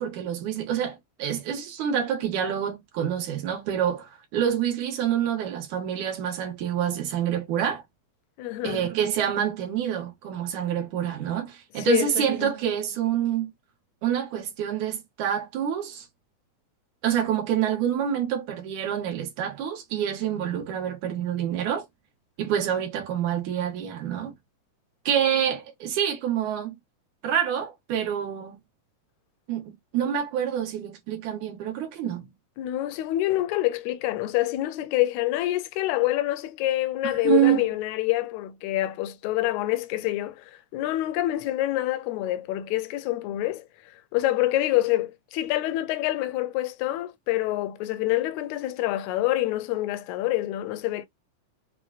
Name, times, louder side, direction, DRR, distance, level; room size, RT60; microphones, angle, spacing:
voice 1, 0.0-7.8 8.6-13.5 14.0-16.1 17.0-21.9 22.4-24.4 25.1-26.7 27.2-28.6 29.5-32.3 37.2-37.6, right 9 dB, 75° right, 2.5 m, -27 dB
voice 2, 8.4-8.8 11.8-12.5 32.6-43.7 44.1-51.1, left 16 dB, 80° left, 1.7 m, -26 dB
5.7 x 2.2 x 2.4 m
omnidirectional pair, 3.5 m